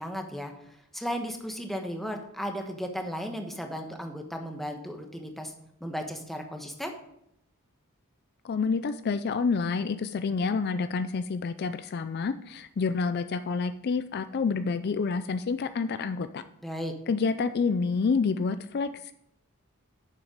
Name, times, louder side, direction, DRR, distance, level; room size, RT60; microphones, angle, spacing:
voice 1, 0.0-5.5 5.8-7.0 16.6-16.9, equal, ahead, 3 dB, 1.2 m, -35 dB
voice 2, 8.4-16.4 17.1-19.1, left 4 dB, 50° left, 11 dB, 0.4 m, -28 dB
9.3 x 7.2 x 5.1 m, 0.76 s
head